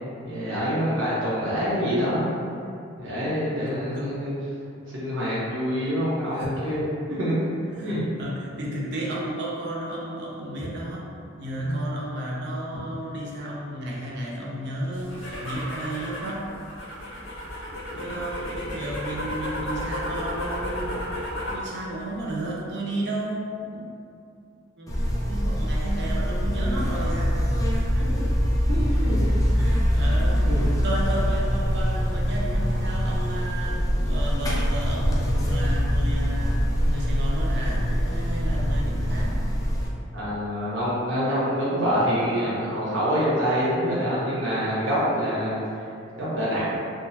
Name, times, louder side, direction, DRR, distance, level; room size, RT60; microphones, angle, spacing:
voice 1, 0.2-2.3 3.0-4.4 4.9-7.5 7.8-8.0 11.6-11.8 28.1-28.2 28.7-29.5 30.5-30.7 40.1-45.6 46.1-46.6, equal, 80° right, -9 dB, 1.1 m, -26 dB
voice 2, 3.7-4.2 6.3-6.6 7.8-11.1 11.4-16.6 17.9-21.0 21.5-23.9 24.8-28.2 29.5-30.5 30.8-36.6 36.9-39.4, right 1 dB, 60° right, -4 dB, 0.6 m, -33 dB
sound 1, 14.9-21.7 22.0-22.6, equal, 90° left, 0.8 m, -33 dB
Buzz, 24.9-39.9, equal, 20° left, 0.4 m, -24 dB
3.5 x 2.2 x 2.8 m, 2.5 s
head